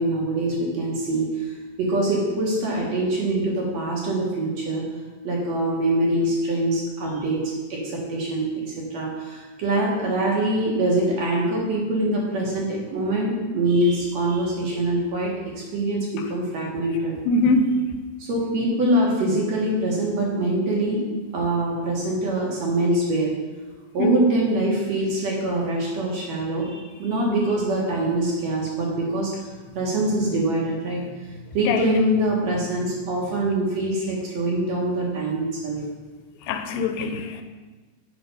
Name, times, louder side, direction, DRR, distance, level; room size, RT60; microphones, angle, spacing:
voice 1, 0.0-4.9 5.2-17.2 18.2-21.0 21.3-23.3 23.9-35.8, right 1 dB, 60° right, 1.9 m, -24 dB
voice 2, 17.3-17.7 24.0-24.3 31.7-31.9 36.5-37.4, left 1 dB, 90° left, 2.4 m, -22 dB
6.2 x 5.3 x 5.4 m
omnidirectional pair, 3.9 m